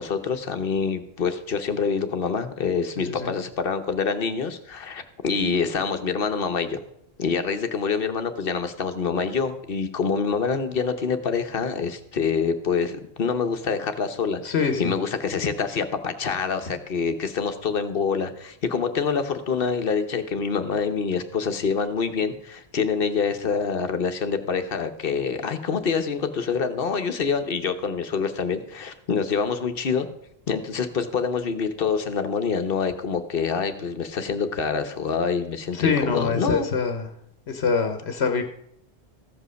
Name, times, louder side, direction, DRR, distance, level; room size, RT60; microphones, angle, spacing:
voice 1, 0.0-6.8 7.2-14.4 14.8-30.1 30.5-36.7, left 5 dB, 60° left, 9 dB, 1.2 m, -26 dB
voice 2, 3.0-3.3 14.4-14.9 35.7-37.1 37.5-38.4, left 5 dB, 90° left, 6 dB, 1.2 m, -24 dB
14.5 x 5.4 x 6.3 m, 0.74 s
omnidirectional pair, 1.1 m